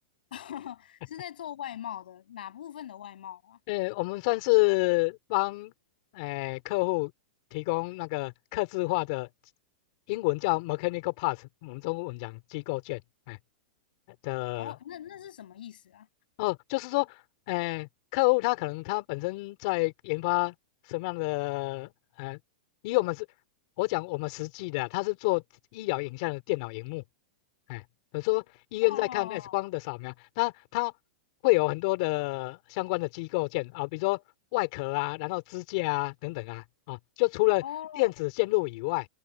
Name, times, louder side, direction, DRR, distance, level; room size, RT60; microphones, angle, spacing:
voice 1, 0.3-3.6 14.6-16.1 28.8-29.6 37.6-38.1, left 11 dB, 80° left, 7.9 m, -40 dB
voice 2, 3.7-5.7 6.1-7.1 7.5-9.3 10.1-13.0 13.3-13.4 14.2-14.7 16.4-17.2 17.5-20.5 20.9-21.9 22.2-22.4 22.8-23.3 23.8-25.4 25.7-27.0 27.7-27.8 28.1-28.4 28.7-30.9 31.4-34.2 34.5-37.6 38.0-39.1, left 26 dB, 45° left, 4.5 m, -29 dB
supercardioid pair, 160°, 5 cm